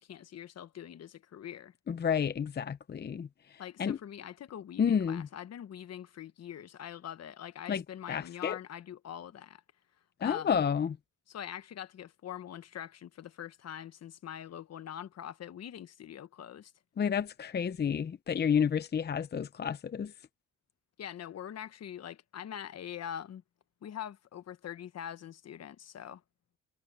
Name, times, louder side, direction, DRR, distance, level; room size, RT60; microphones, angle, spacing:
voice 1, 0.0-1.7 3.6-9.6 10.2-10.6 11.3-16.7 21.0-23.4 23.8-26.2, left 10 dB, 55° left, 1.2 m, -43 dB
voice 2, 1.9-4.0 4.8-5.3 7.7-7.8 8.1-8.6 10.2-11.0 17.0-20.1, left 7 dB, 35° left, 0.7 m, -30 dB
cardioid pair, 90°, 30 cm